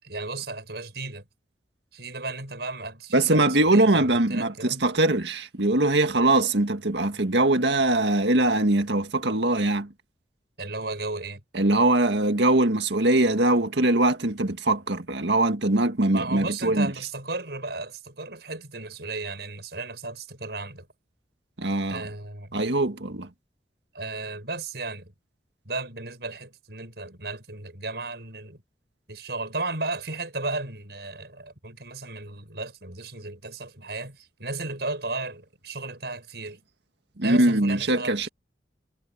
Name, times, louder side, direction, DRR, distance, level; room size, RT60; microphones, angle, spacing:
voice 1, 0.0-1.3 1.9-4.8 10.6-11.4 16.1-20.9 21.9-22.6 23.9-25.1 25.6-28.6 29.1-36.6 37.2-38.3, right 3 dB, 70° right, 6.5 m, -35 dB
voice 2, 3.1-9.9 11.5-16.9 21.6-22.0 22.5-23.3 37.2-38.3, right 2 dB, 85° right, 1.9 m, -22 dB
head